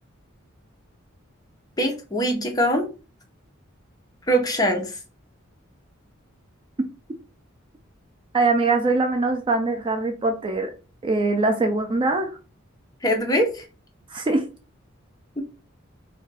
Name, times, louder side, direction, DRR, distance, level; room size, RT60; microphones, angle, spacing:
voice 1, 1.8-2.9 4.3-5.0 13.0-13.6 15.4-15.5, equal, 20° left, 2 dB, 0.6 m, -22 dB
voice 2, 8.3-10.7 11.0-12.3 14.1-14.5, right 3 dB, 25° right, 5 dB, 0.3 m, -22 dB
2.5 x 2.2 x 3.9 m, 0.34 s
head